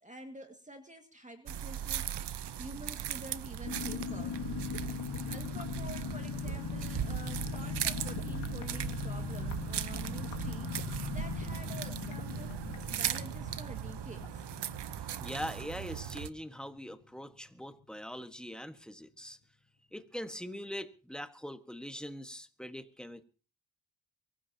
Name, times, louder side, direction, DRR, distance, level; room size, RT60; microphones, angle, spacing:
voice 1, 0.0-2.1 2.6-4.4 5.3-12.5 12.9-14.4, right 1 dB, 15° right, 6 dB, 2.0 m, -48 dB
sound 1, 1.5-16.3, right 10 dB, 60° right, 1.0 m, -38 dB
sound 2, 3.6-16.0 16.3-16.4 16.6-16.9, left 7 dB, 75° left, 2.4 m, -40 dB
voice 2, 15.2-19.4 19.9-23.2, equal, ahead, 9 dB, 1.5 m, -42 dB
23.5 x 16.0 x 2.9 m, 0.37 s
cardioid pair, 80°, 46 cm